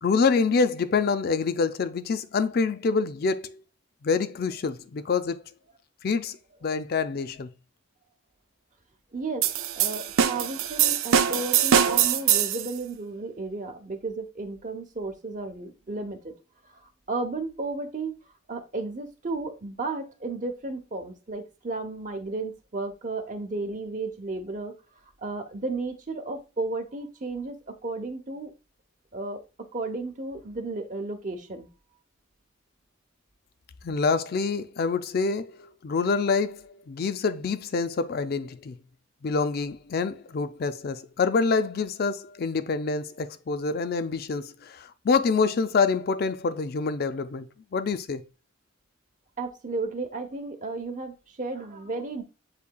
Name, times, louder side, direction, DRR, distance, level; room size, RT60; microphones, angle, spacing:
voice 1, 0.0-3.5 4.0-5.4 6.0-7.5 33.8-38.7 39.2-48.2, left 4 dB, 45° left, 0.4 m, -26 dB
voice 2, 9.1-9.4 9.8-16.2 16.8-18.1 18.5-24.7 25.2-27.6 27.8-28.5 29.1-29.4 29.7-31.7 49.4-52.2, right 3 dB, 40° right, 0.9 m, -33 dB
sound 1, 9.4-12.7, right 8 dB, 80° right, 0.4 m, -22 dB
8.3 x 2.8 x 2.2 m
head